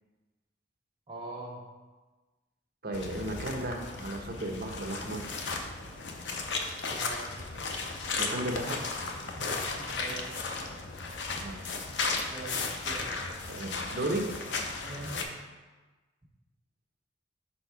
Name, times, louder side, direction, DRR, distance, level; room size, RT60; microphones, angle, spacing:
voice 1, 1.1-1.6 6.9-7.3 9.3-10.4 12.2-13.2 14.8-15.3, right 2 dB, 25° right, -4 dB, 1.1 m, -43 dB
voice 2, 2.8-5.3 8.1-8.8 11.4-11.6 13.5-14.3, right 1 dB, 50° right, 2 dB, 0.8 m, -34 dB
sound 1, 2.9-15.2, left 3 dB, 70° left, 0.6 m, -35 dB
5.5 x 4.2 x 4.6 m, 1.3 s
head